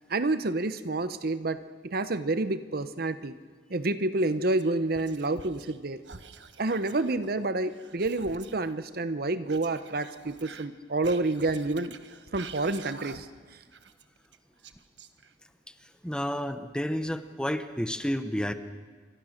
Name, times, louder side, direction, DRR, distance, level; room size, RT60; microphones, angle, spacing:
voice 1, 0.1-3.3 3.7-6.0 6.6-11.9 12.3-13.3, right 2 dB, 55° right, 12 dB, 0.9 m, -29 dB
Whispering, 4.2-5.8 6.0-8.7 9.5-13.4 13.7-15.5, right 5 dB, 75° right, 1.3 m, -48 dB
voice 2, 16.0-18.5, equal, 5° left, 10 dB, 1.0 m, -30 dB
27.5 x 24.5 x 6.6 m, 1.5 s
head